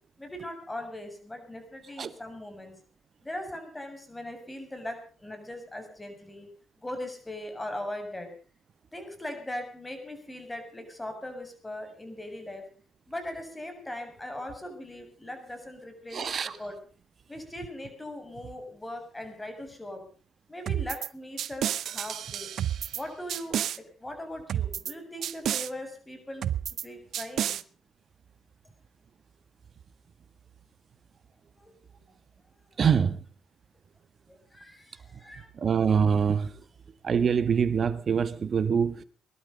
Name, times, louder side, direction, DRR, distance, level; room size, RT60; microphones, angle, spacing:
voice 1, 0.2-2.8 3.2-6.5 6.8-8.3 8.9-12.6 13.1-16.8 17.3-20.0 20.5-22.5 22.9-26.5 26.8-27.6 31.6-31.7 32.0-32.1 34.3-35.5, left 1 dB, 15° left, 7.1 m, -40 dB
voice 2, 16.1-16.5 32.8-33.2 35.6-36.5 37.0-39.0, right 6 dB, 55° right, 1.6 m, -24 dB
sound 1, 20.7-21.1 21.4-23.0 23.3-23.8 24.5-24.9 25.2-25.7 26.4-26.8 27.1-27.6, right 10 dB, 70° right, 0.7 m, -30 dB
22.0 x 12.0 x 5.4 m
supercardioid pair, 55°, 0 cm